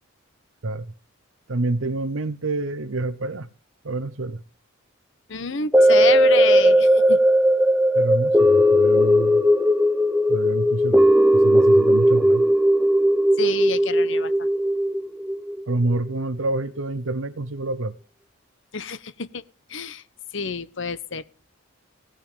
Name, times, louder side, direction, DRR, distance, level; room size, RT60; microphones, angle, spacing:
voice 1, 0.6-0.9 1.5-3.5 3.8-4.4 7.9-9.4 10.3-12.5 15.7-18.0, right 2 dB, 70° right, 0.8 m, -27 dB
voice 2, 5.3-7.2 13.4-14.5 18.7-19.4 19.7-20.0 20.3-21.2, left 5 dB, 60° left, 1.0 m, -28 dB
sound 1, 5.7-16.1 16.6-16.7, equal, 5° right, 0.9 m, -17 dB
17.0 x 9.0 x 8.6 m
head